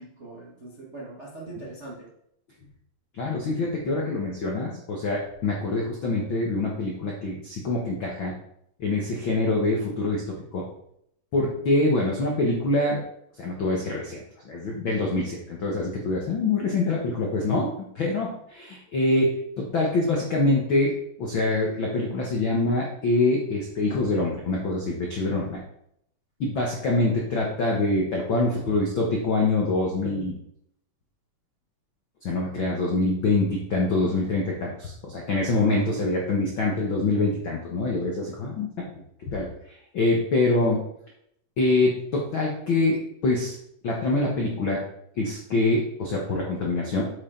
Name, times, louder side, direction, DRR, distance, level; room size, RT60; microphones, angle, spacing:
voice 1, 0.0-2.1, right 2 dB, 80° right, -4 dB, 0.6 m, -41 dB
voice 2, 3.1-8.3 8.8-10.2 10.5-10.6 11.3-13.0 13.4-19.4 19.7-20.9 21.2-25.6 26.4-30.3 32.2-38.8 39.3-39.5 39.9-40.8 41.6-43.5 43.8-44.8 45.2-47.0, left 2 dB, 75° left, -2 dB, 1.1 m, -25 dB
8.6 x 7.4 x 3.8 m, 0.74 s
omnidirectional pair, 4.3 m